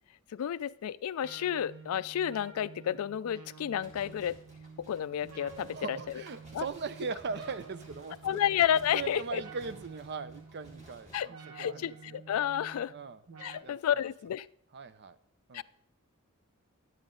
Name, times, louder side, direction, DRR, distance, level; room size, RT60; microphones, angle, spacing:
voice 1, 0.3-4.4 4.9-6.2 6.5-6.6 8.2-9.4 11.1-11.3 11.5-12.9 13.4-14.5 15.5-15.6, left 9 dB, 75° left, 19 dB, 0.3 m, -31 dB
sound 1, 1.2-13.6, right 4 dB, 80° right, 1.0 m, -50 dB
sound 2, 3.8-11.2, equal, 35° right, 2.3 m, -56 dB
voice 2, 5.7-8.4 8.9-12.2 12.9-13.2 13.6-13.8 14.7-15.2 15.5-15.6, right 5 dB, 50° right, 13 dB, 0.5 m, -39 dB
11.0 x 8.8 x 3.8 m, 0.64 s
head